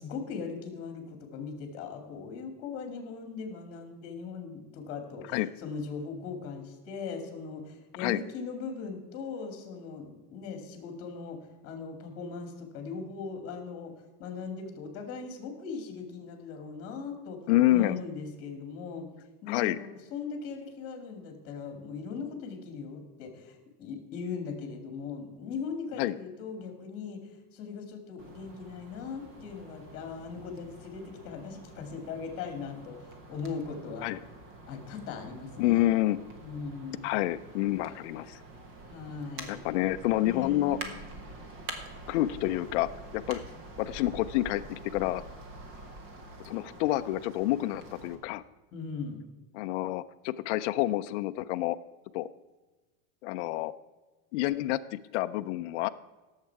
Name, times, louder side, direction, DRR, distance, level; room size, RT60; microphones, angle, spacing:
voice 1, 0.0-11.4 11.6-13.9 14.2-17.4 17.7-19.1 19.4-27.2 27.5-34.1 34.7-35.9 36.4-37.1 38.9-39.6 40.2-41.0 48.7-49.2, left 5 dB, 30° left, 6 dB, 2.2 m, -39 dB
voice 2, 17.5-18.0 19.5-19.8 26.0-26.1 34.0-34.2 35.6-36.2 37.0-38.4 39.5-40.8 42.1-43.4 43.8-45.2 46.5-48.4 49.5-51.8 52.1-52.3 53.2-53.7 54.3-55.9, left 15 dB, 55° left, 10 dB, 0.5 m, -28 dB
sound 1, 28.2-48.2, right 2 dB, 30° right, 1.3 m, -47 dB
18.0 x 7.4 x 4.7 m, 1.2 s
supercardioid pair, 180°, 45 cm